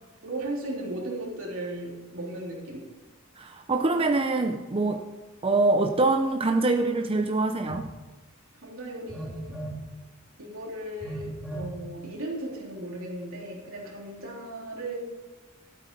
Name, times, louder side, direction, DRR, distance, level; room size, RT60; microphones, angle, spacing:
voice 1, 0.2-2.9 8.6-9.6 10.4-15.0, right 1 dB, 75° right, -1 dB, 3.3 m, -36 dB
voice 2, 3.4-5.0 5.4-7.9, right 3 dB, 25° right, 5 dB, 0.6 m, -24 dB
Telephone, 7.6-7.8 9.1-9.8 11.0-11.7, right 1 dB, 5° right, 2.2 m, -36 dB
12.5 x 8.5 x 5.3 m, 1.2 s
head